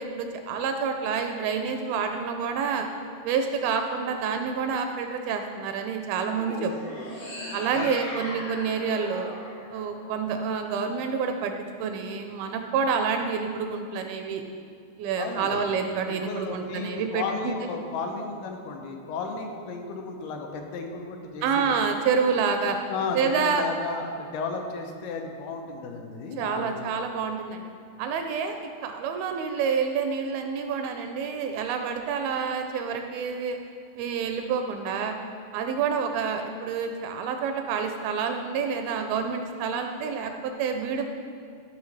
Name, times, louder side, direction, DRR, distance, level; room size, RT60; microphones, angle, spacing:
voice 1, 0.0-2.9 3.2-7.0 7.5-9.3 9.7-11.5 11.8-14.4 15.0-17.5 21.4-22.8 23.2-23.6 26.4-27.7 28.0-33.6 34.0-35.2 35.5-41.1, right 6 dB, 80° right, 5 dB, 2.2 m, -28 dB
sound 1, 6.3-10.6, left 1 dB, 65° left, 1.2 m, -38 dB
voice 2, 15.2-15.6 16.1-21.7 22.9-26.9, left 4 dB, 85° left, 3 dB, 2.6 m, -34 dB
13.0 x 5.9 x 3.2 m, 2.4 s
omnidirectional pair, 4.5 m